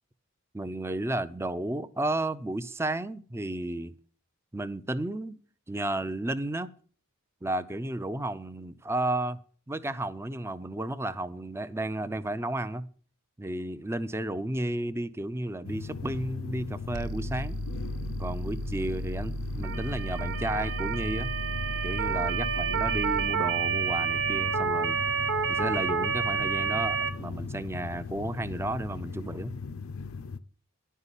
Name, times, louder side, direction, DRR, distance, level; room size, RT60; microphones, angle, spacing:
voice 1, 0.5-3.9 4.5-5.4 5.7-6.7 7.4-9.4 9.7-12.9 13.4-17.6 18.2-21.3 21.8-25.0 25.5-29.5, right 1 dB, 10° right, 0.4 m, -33 dB
sound 1, 15.6-30.4, left 4 dB, 60° left, 0.5 m, -38 dB
sound 2, 16.9-23.3, right 1 dB, 75° right, 0.6 m, -36 dB
Motor vehicle (road) / Siren, 19.6-27.1, right 6 dB, 55° right, 1.1 m, -29 dB
10.5 x 5.6 x 8.1 m
head